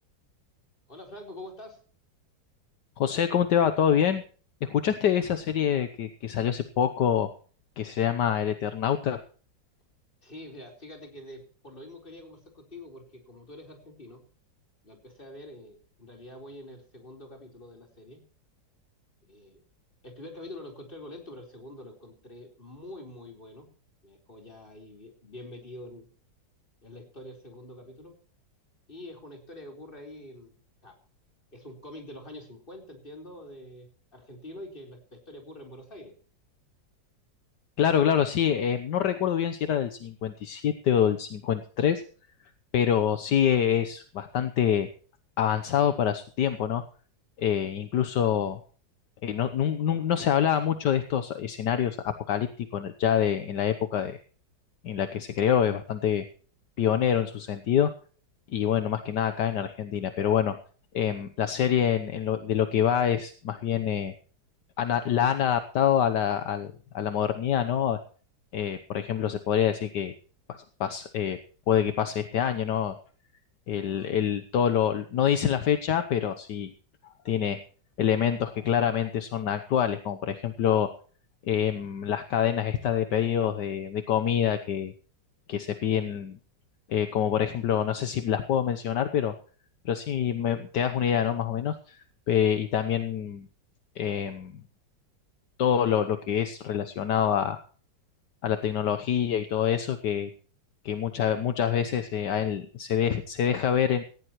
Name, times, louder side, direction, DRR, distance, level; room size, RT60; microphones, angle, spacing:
voice 1, 0.9-1.8 10.2-14.2 14.8-18.2 19.2-19.6 20.0-23.7 24.0-26.1 26.8-28.1 28.9-31.0 31.5-36.1, left 1 dB, 30° left, 2 dB, 4.3 m, -45 dB
voice 2, 3.0-4.2 4.6-7.3 7.8-9.2 37.8-42.0 42.7-44.9 45.4-46.8 47.4-48.6 49.2-54.2 54.8-56.2 56.8-57.9 58.5-60.6 60.9-64.1 64.8-68.0 68.5-70.1 70.5-71.4 71.7-73.0 73.7-76.7 77.2-77.6 78.0-80.9 81.4-84.9 85.5-86.4 86.9-89.3 89.8-93.5 94.0-94.6 95.6-97.6 98.4-100.3 100.8-104.0, left 9 dB, 70° left, 10 dB, 1.5 m, -26 dB
18.0 x 15.5 x 3.1 m, 0.42 s
omnidirectional pair, 1.9 m